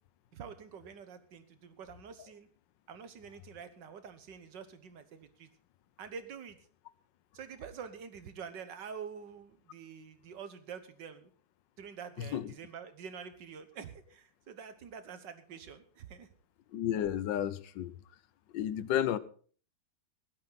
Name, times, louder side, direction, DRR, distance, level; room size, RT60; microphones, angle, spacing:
voice 1, 0.3-2.5 2.9-5.5 6.0-6.6 7.3-11.3 11.8-16.3, right 6 dB, 75° right, 1.9 m, -47 dB
voice 2, 12.2-12.5 16.7-17.9 18.5-19.2, left 10 dB, 80° left, 1.4 m, -32 dB
16.5 x 12.0 x 4.0 m
omnidirectional pair, 1.9 m